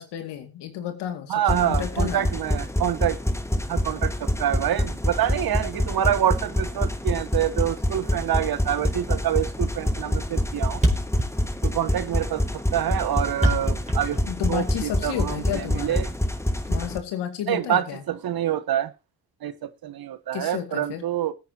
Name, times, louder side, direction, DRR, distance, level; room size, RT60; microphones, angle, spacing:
voice 1, 0.0-2.3 14.3-16.1 16.7-18.0 20.3-21.0, left 10 dB, 75° left, 2.3 m, -32 dB
voice 2, 1.3-3.2 3.7-10.8 11.6-12.4 12.7-14.2 14.5-16.1 17.5-18.9 19.4-21.3, right 11 dB, 60° right, 1.2 m, -26 dB
sound 1, 1.5-17.0, left 1 dB, 5° left, 1.5 m, -26 dB
Thump thud, 9.4-9.6 9.9-10.0 10.2-10.3 10.5-10.6 10.8-14.8, right 1 dB, 15° right, 4.8 m, -25 dB
19.5 x 8.8 x 2.9 m
hypercardioid pair, 50°, 42 cm